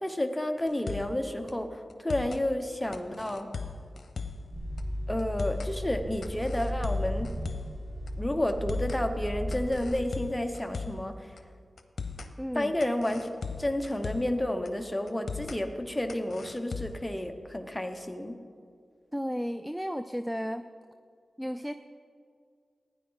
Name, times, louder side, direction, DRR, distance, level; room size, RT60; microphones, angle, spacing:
voice 1, 0.0-3.5 5.1-7.3 8.2-11.1 12.5-13.3 13.6-18.4, left 1 dB, 10° left, 6 dB, 0.9 m, -31 dB
sound 1, 0.7-1.2 1.5-1.6 1.9-2.4 2.9-4.5 4.8-4.9 5.2-5.7 6.2-7.8 8.1-8.2 8.5-9.0 9.5-11.1 11.4-11.5 11.8-12.3 12.8-14.4 14.7-14.8 15.1-15.6 16.1-17.1, left 4 dB, 75° left, 0.8 m, -38 dB
sound 2, 4.5-9.9, equal, 55° right, 3.4 m, -35 dB
voice 2, 12.4-12.7 19.1-20.7 21.4-21.7, equal, 5° right, 10 dB, 0.3 m, -33 dB
15.5 x 9.7 x 3.9 m, 2.2 s
cardioid pair, 65°, 0 cm